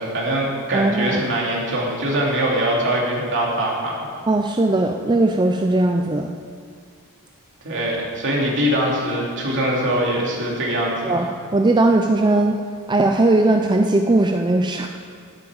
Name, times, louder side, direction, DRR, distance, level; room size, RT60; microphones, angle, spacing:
voice 1, 0.0-4.1 7.6-11.2, right 1 dB, 55° right, -3 dB, 2.9 m, -22 dB
voice 2, 0.7-1.2 4.3-6.3 11.0-12.6 12.9-14.9, right 2 dB, 20° right, 4 dB, 0.5 m, -18 dB
9.9 x 8.6 x 8.8 m, 2.1 s
head